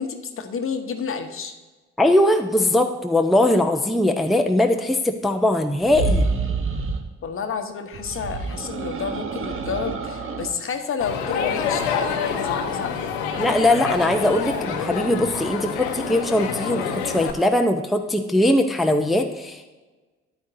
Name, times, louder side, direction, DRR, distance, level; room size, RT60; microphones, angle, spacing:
voice 1, 0.0-1.5 7.2-13.1, left 6 dB, 40° left, 7 dB, 1.1 m, -30 dB
voice 2, 2.0-6.2 13.4-19.7, left 1 dB, ahead, 4 dB, 0.7 m, -20 dB
sound 1, 5.8-7.1 7.9-10.6, right 4 dB, 40° right, 1.1 m, -27 dB
Crowd, 11.0-17.3, left 6 dB, 75° left, 1.0 m, -27 dB
13.0 x 9.5 x 2.7 m, 1.2 s
figure-of-eight pair, 45°, 32 cm